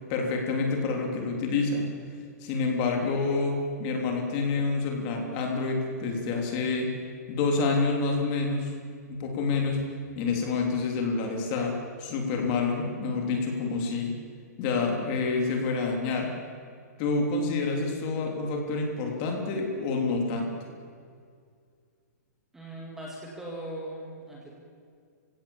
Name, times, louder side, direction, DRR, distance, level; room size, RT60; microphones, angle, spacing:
voice 1, 0.1-1.9 2.4-6.9 7.3-8.7 9.1-9.8 10.2-14.1 14.6-16.3 17.0-20.5, left 4 dB, 25° left, 2 dB, 3.3 m, -28 dB
voice 2, 22.5-24.5, right 1 dB, 5° right, -3 dB, 2.1 m, -39 dB
30.0 x 16.5 x 7.2 m, 2.2 s
hypercardioid pair, 170°, 9 cm